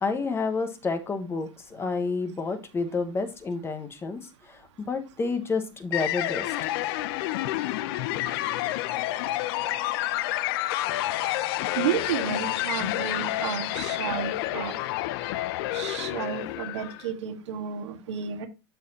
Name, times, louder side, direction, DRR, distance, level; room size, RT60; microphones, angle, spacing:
voice 1, 0.0-4.2 4.5-4.6 4.9-6.5, left 4 dB, 15° left, 1.2 m, -29 dB
sound 1, 5.9-17.1, left 15 dB, 55° left, 0.6 m, -29 dB
voice 2, 11.7-14.7 15.7-18.5, right 8 dB, 80° right, 1.7 m, -32 dB
12.5 x 4.2 x 2.8 m
hypercardioid pair, 125°, 15 cm